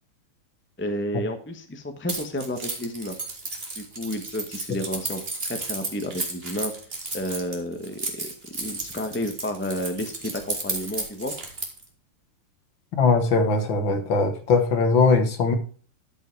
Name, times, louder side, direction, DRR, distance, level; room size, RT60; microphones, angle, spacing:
voice 1, 0.8-3.2 3.8-6.7 7.1-8.3 8.6-11.3, equal, 10° left, 6 dB, 0.7 m, -31 dB
Keys jangling, 2.1-11.8, right 3 dB, 30° right, 2.2 m, -33 dB
voice 2, 13.0-15.5, left 4 dB, 65° left, 7 dB, 2.1 m, -20 dB
12.5 x 5.6 x 4.6 m, 0.43 s
omnidirectional pair, 2.4 m